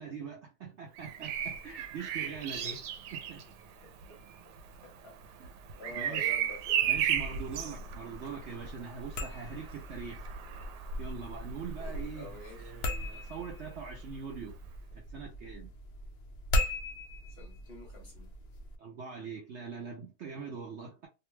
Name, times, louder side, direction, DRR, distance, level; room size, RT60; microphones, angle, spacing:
voice 1, 0.0-2.8 3.1-3.4 5.4-5.5 5.9-6.3 6.9-10.3 11.0-12.3 12.6-14.6 14.9-15.7 18.8-21.1, right 6 dB, 60° right, 0.7 m, -42 dB
Bird vocalization bird call bird song, 0.9-12.8 14.5-14.7, right 9 dB, 90° right, 1.2 m, -36 dB
voice 2, 3.8-4.5 4.8-5.2 5.8-7.0 11.8-12.6 17.3-18.3, left 2 dB, 45° left, 1.1 m, -49 dB
sound 1, 9.0-18.8, left 1 dB, 60° left, 0.6 m, -38 dB
2.8 x 2.2 x 3.1 m
omnidirectional pair, 1.7 m